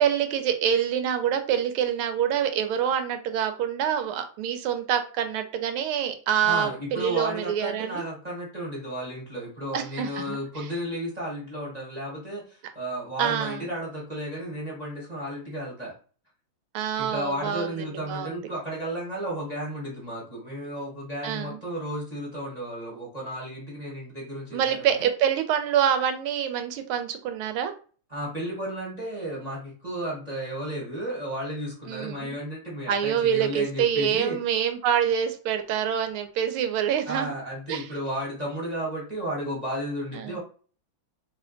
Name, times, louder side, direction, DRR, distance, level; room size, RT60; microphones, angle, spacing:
voice 1, 0.0-8.0 9.7-10.4 13.2-13.6 16.7-17.7 18.1-18.3 21.2-21.6 24.5-27.7 31.9-32.3 32.9-37.3 37.7-37.9 40.2-40.4, right 9 dB, 90° right, 8 dB, 1.5 m, -26 dB
voice 2, 6.4-16.0 16.9-25.1 28.1-34.4 37.1-40.4, equal, 25° right, -3 dB, 1.0 m, -33 dB
3.3 x 2.8 x 3.8 m, 0.39 s
omnidirectional pair, 2.3 m